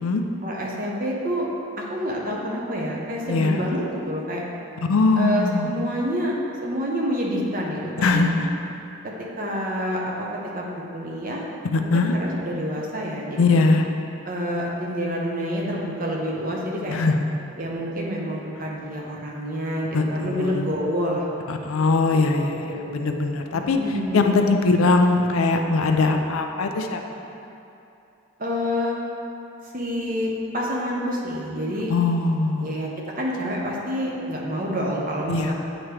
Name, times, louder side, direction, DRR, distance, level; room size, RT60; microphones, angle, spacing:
voice 1, 0.4-1.5 1.8-4.4 5.2-6.3 6.6-8.3 9.0-11.4 11.8-13.6 14.2-16.9 17.6-21.2 22.1-22.2 22.5-24.4 28.4-29.0 29.7-31.9 32.6-32.9 33.2-35.5, equal, 40° right, -3 dB, 0.9 m, -28 dB
voice 2, 3.3-3.6 4.9-5.7 8.0-8.5 11.7-12.2 13.4-13.9 16.9-17.2 19.9-20.6 21.5-23.8 24.1-27.0 31.9-32.7 35.3-35.5, left 3 dB, 75° left, 4 dB, 0.5 m, -21 dB
8.7 x 3.0 x 4.8 m, 2.8 s
head